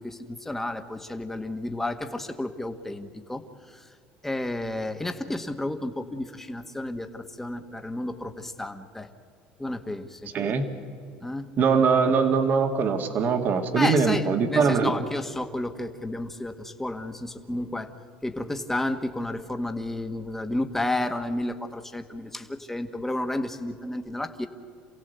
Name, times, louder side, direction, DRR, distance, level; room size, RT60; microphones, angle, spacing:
voice 1, 0.0-3.4 4.2-9.1 9.6-10.3 11.2-11.5 13.7-17.9 18.2-24.5, left 1 dB, 5° left, 6 dB, 1.5 m, -31 dB
voice 2, 10.3-10.7 11.6-14.9, right 5 dB, 45° right, 6 dB, 2.1 m, -22 dB
27.5 x 16.5 x 8.1 m, 2.4 s
supercardioid pair, 110°, 4 cm